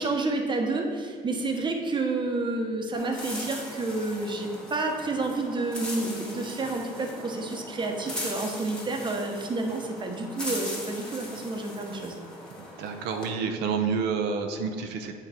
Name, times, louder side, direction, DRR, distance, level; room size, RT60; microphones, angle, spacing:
voice 1, 0.0-12.1, right 2 dB, 30° right, 3 dB, 1.0 m, -30 dB
sound 1, 2.9-13.3, left 1 dB, 5° left, 1.6 m, -39 dB
voice 2, 12.8-15.2, right 5 dB, 90° right, 5 dB, 0.6 m, -29 dB
8.2 x 3.9 x 4.3 m, 2.3 s
cardioid pair, 110°, 17 cm